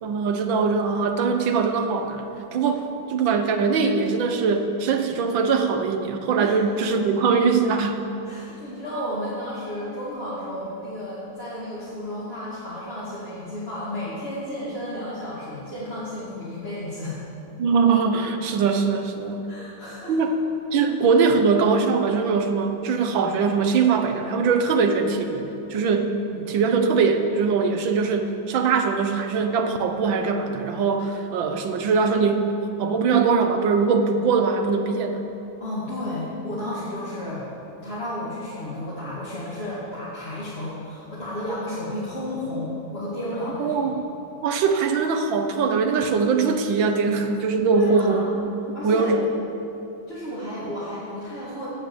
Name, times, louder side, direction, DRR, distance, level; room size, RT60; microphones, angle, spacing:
voice 1, 0.0-2.8 3.1-8.1 17.6-19.4 20.1-20.3 20.7-32.5 32.8-35.2 43.6-43.9 44.4-48.2 48.8-49.3, right 5 dB, 80° right, 6 dB, 1.7 m, -22 dB
voice 2, 8.2-17.2 19.5-20.2 26.3-26.4 35.6-37.4 37.8-43.9 47.7-48.3 48.7-49.1 50.1-51.7, left 1 dB, 30° left, -10 dB, 2.4 m, -32 dB
16.0 x 6.6 x 7.2 m, 3.0 s
omnidirectional pair, 2.1 m